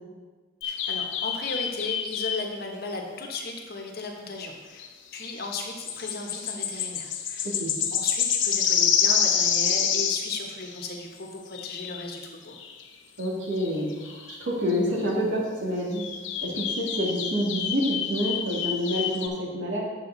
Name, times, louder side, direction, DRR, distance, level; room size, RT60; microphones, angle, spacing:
sound 1, 0.6-2.5 4.8-4.9 5.2-5.3 5.5-10.9 11.5-12.1 12.5-12.8 13.2-13.3 13.5-14.4 14.7-14.8 15.9-19.3, left 7 dB, 70° left, 0.8 m, -28 dB
voice 1, 0.6-7.5 7.9-12.5, left 3 dB, 55° left, 1 dB, 1.2 m, -36 dB
voice 2, 13.2-16.0 16.4-19.8, equal, 65° right, -4 dB, 2.3 m, -28 dB
9.0 x 6.8 x 4.0 m, 1.4 s
head